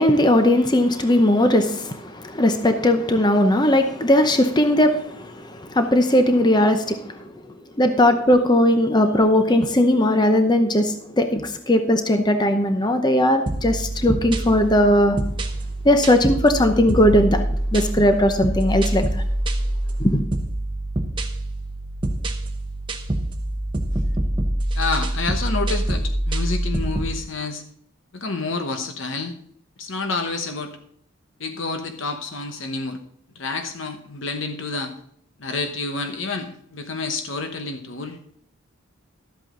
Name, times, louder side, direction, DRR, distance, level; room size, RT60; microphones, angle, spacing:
voice 1, 0.0-7.1 7.8-15.2 15.8-17.4 17.7-19.2 20.0-20.2, left 1 dB, 20° left, 7 dB, 0.7 m, -18 dB
sound 1, 13.5-27.2, right 1 dB, 20° right, 0.9 m, -25 dB
voice 2, 24.8-27.6 28.1-29.3 29.8-30.7 31.4-33.0 33.4-34.9 35.4-38.2, left 3 dB, 60° left, 6 dB, 1.0 m, -29 dB
12.5 x 8.1 x 3.8 m, 0.67 s
head